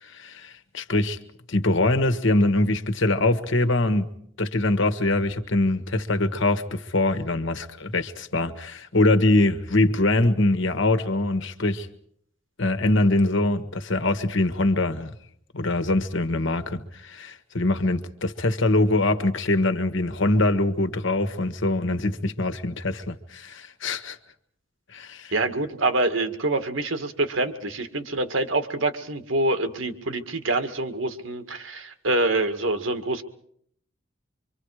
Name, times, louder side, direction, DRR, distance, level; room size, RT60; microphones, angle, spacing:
voice 1, 0.0-1.2 1.5-4.1 4.4-11.9 12.6-15.1 15.5-24.2 24.9-25.3, left 2 dB, 65° left, 1.6 m, -23 dB
voice 2, 25.3-33.2, right 2 dB, 70° right, 2.0 m, -26 dB
26.0 x 25.0 x 4.9 m
head